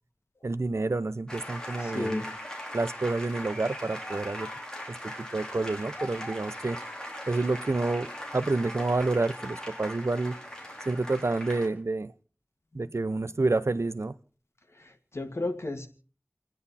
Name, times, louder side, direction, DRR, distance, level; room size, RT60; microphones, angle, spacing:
voice 1, 0.4-2.2 2.7-4.5 5.0-6.8 7.3-10.4 10.9-12.1 12.7-14.1, right 3 dB, 90° right, 0.7 m, -29 dB
sound 1, 1.3-11.7, equal, 15° left, 4.1 m, -40 dB
voice 2, 1.8-2.3 12.7-12.9 15.1-15.9, left 2 dB, 75° left, 1.9 m, -32 dB
30.0 x 10.0 x 4.2 m
wide cardioid pair, 40°, 5 cm